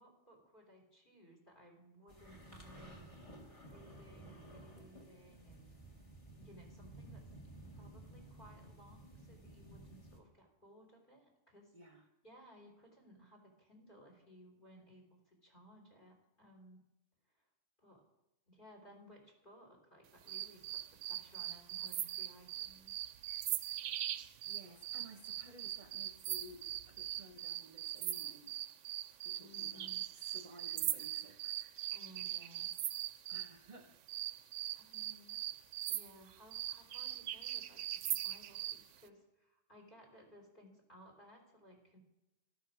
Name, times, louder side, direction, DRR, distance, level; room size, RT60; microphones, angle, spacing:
voice 1, 0.0-3.1 3.6-5.8 6.4-7.3 7.7-11.7 12.2-16.8 17.3-17.4 17.8-18.0 18.5-23.0 29.4-30.0 31.9-32.8 34.7-35.4 35.9-42.0, equal, 45° left, 1 dB, 3.7 m, -60 dB
sound 1, 2.1-10.2, right 1 dB, 30° left, 2.0 m, -54 dB
voice 2, 11.7-12.0 18.8-18.9 23.8-24.0 24.4-28.6 29.1-29.9 30.2-31.7 33.3-34.0, right 1 dB, 45° right, 6 dB, 0.9 m, -56 dB
sound 2, 20.3-33.5 34.1-38.8, right 12 dB, 80° right, 0.9 m, -41 dB
12.5 x 12.5 x 4.9 m, 0.92 s
omnidirectional pair, 1.2 m